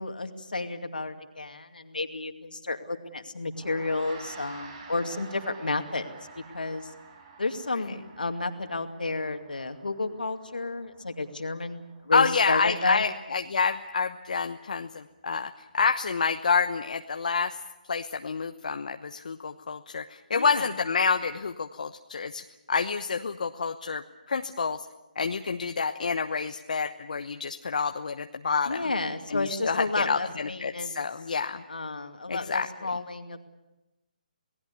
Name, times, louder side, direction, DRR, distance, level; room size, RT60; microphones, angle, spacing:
voice 1, 0.0-6.1 6.5-6.9 7.4-13.0 20.3-20.7 28.7-30.9 31.7-33.5, left 3 dB, 75° left, 6 dB, 2.4 m, -31 dB
Gong, 3.5-13.1, right 4 dB, 35° right, 6.5 m, -49 dB
voice 2, 12.1-17.6 17.9-24.8 25.2-28.9 29.3-31.6 32.3-32.9, left 5 dB, 60° left, 7 dB, 1.0 m, -28 dB
28.5 x 19.0 x 6.9 m, 1.0 s
figure-of-eight pair, 145°, 5 cm